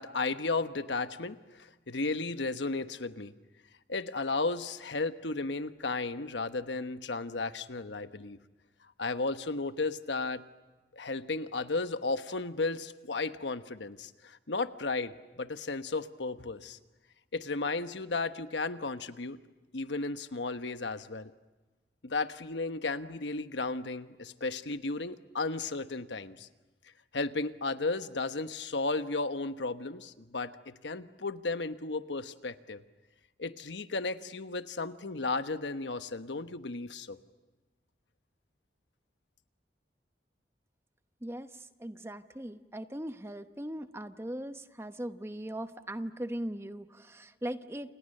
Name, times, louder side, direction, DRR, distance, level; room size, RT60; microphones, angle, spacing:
voice 1, 0.0-3.3 3.9-8.4 9.0-10.4 10.9-16.8 17.3-19.4 19.7-21.3 22.0-26.5 27.1-32.8 33.4-37.2, left 3 dB, 90° left, 10 dB, 1.2 m, -34 dB
voice 2, 41.2-47.9, right 1 dB, 15° right, 10 dB, 0.9 m, -39 dB
30.0 x 28.5 x 6.7 m, 1.2 s
head